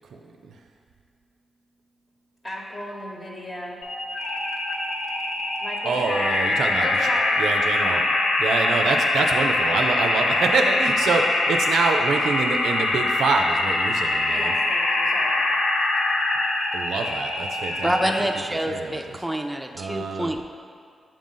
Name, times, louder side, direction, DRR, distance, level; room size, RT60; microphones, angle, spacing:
voice 1, 0.1-0.6 5.8-7.1 7.4-8.0 8.4-14.5 16.7-18.3 18.7-19.2 19.7-20.3, right 4 dB, 90° right, 4 dB, 0.3 m, -26 dB
voice 2, 2.4-3.8 5.6-6.3 6.8-7.4 7.8-8.1 14.3-15.6, equal, 40° left, -2 dB, 1.0 m, -35 dB
sound 1, 3.8-18.4, left 2 dB, 90° left, 0.5 m, -23 dB
voice 3, 17.8-20.4, right 1 dB, 10° right, 3 dB, 0.4 m, -26 dB
7.1 x 2.5 x 5.5 m, 2.2 s
cardioid pair, 65°, 0 cm